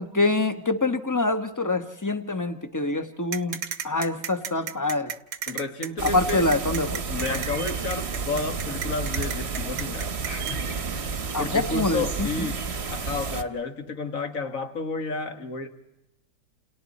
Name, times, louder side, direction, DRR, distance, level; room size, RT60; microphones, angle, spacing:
voice 1, 0.0-3.6 3.8-5.1 6.0-7.0 7.3-7.4 11.3-12.5, left 2 dB, 10° left, 1.2 m, -25 dB
sound 1, 3.3-10.5, right 8 dB, 65° right, 1.4 m, -33 dB
voice 2, 5.5-6.5 7.1-15.7, left 3 dB, 55° left, 2.1 m, -32 dB
sound 2, 6.0-13.4, right 5 dB, 45° right, 1.3 m, -31 dB
29.5 x 29.0 x 4.2 m
omnidirectional pair, 1.7 m